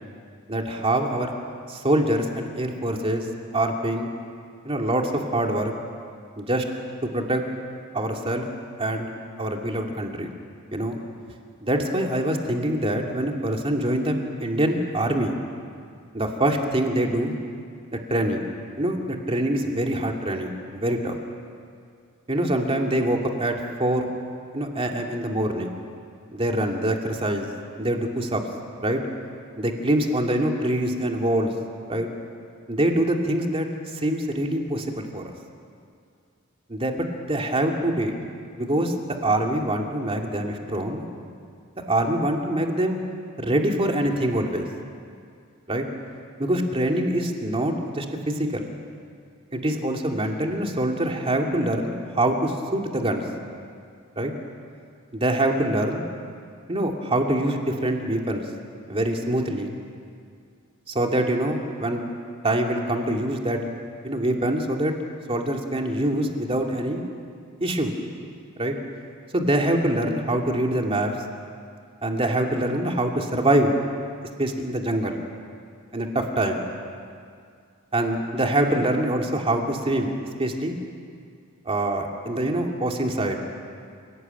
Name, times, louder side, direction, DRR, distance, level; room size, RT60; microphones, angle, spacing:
voice 1, 0.5-1.3 1.7-3.2 3.5-4.1 4.6-5.7 6.4-6.6 7.0-7.4 7.9-8.5 8.8-9.1 9.4-10.3 10.7-11.0 11.6-15.4 16.1-17.4 18.1-18.5 18.8-21.2 22.3-23.5 23.8-24.1 24.5-25.8 26.3-27.5 27.8-28.4 28.8-29.0 29.6-31.5 31.9-32.1 32.7-33.7 33.9-35.3 36.7-38.1 38.6-38.9 39.2-41.0 41.9-43.0 43.4-44.7 45.7-45.8 46.4-48.7 49.5-53.2 54.2-54.3 55.1-56.0 56.7-58.4 58.9-59.7 60.9-62.0 62.4-63.6 64.0-64.9 65.3-67.0 67.6-67.9 68.6-68.7 69.3-71.1 72.0-73.7 74.4-75.2 75.9-76.6 77.9-80.1 80.4-80.8 81.6-83.4, right 1 dB, 30° right, 2 dB, 2.7 m, -24 dB
28.5 x 18.5 x 9.2 m, 2.2 s
head